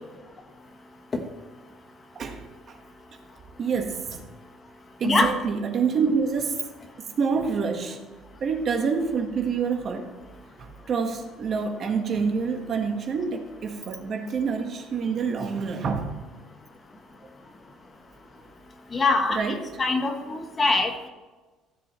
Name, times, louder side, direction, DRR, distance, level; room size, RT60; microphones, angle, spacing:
voice 1, 2.1-2.8 3.6-4.2 5.0-6.6 7.2-8.0 8.4-10.1 10.6-16.2 19.3-19.7, right 5 dB, 45° right, 4 dB, 1.6 m, -27 dB
voice 2, 18.9-21.1, left 3 dB, 25° left, 5 dB, 1.3 m, -24 dB
16.5 x 7.1 x 3.2 m, 1.2 s
cardioid pair, 125°, 0 cm